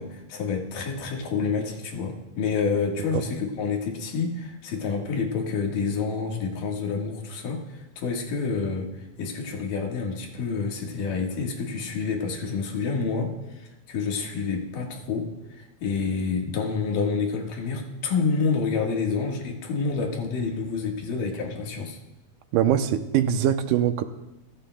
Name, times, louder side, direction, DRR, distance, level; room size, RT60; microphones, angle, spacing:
voice 1, 0.0-22.0, left 5 dB, 85° left, 3.3 m, -28 dB
voice 2, 22.5-24.0, right 10 dB, 80° right, 2.3 m, -22 dB
29.5 x 14.0 x 2.3 m
omnidirectional pair, 3.8 m